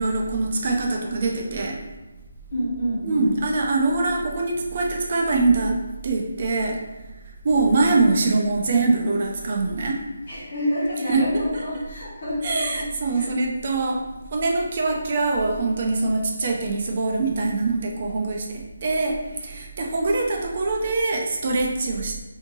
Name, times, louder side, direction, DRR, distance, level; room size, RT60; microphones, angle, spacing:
voice 1, 0.0-1.8 3.0-5.8 6.0-6.8 7.4-10.0 11.0-11.8 12.4-14.0 14.3-22.2, right 3 dB, 45° right, 0 dB, 0.4 m, -23 dB
voice 2, 2.5-3.3 10.3-12.8 13.1-13.4, equal, 50° left, -8 dB, 1.5 m, -28 dB
2.7 x 2.6 x 2.6 m, 1.1 s
figure-of-eight pair, 165°, 0 cm